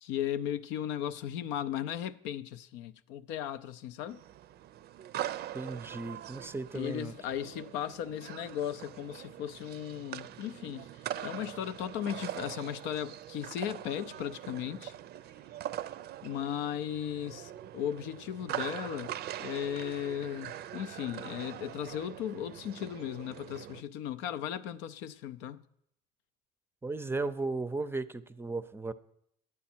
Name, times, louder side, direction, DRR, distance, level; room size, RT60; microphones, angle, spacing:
voice 1, 0.0-4.2 6.7-10.9 11.2-14.9 16.2-19.1 19.4-25.6, left 10 dB, 85° left, 0.5 m, -36 dB
sound 1, 4.1-23.8, right 12 dB, 60° right, 0.5 m, -42 dB
voice 2, 5.5-7.1 26.8-28.9, right 3 dB, 10° right, 0.5 m, -35 dB
11.5 x 8.5 x 4.4 m
cardioid pair, 95°, 19 cm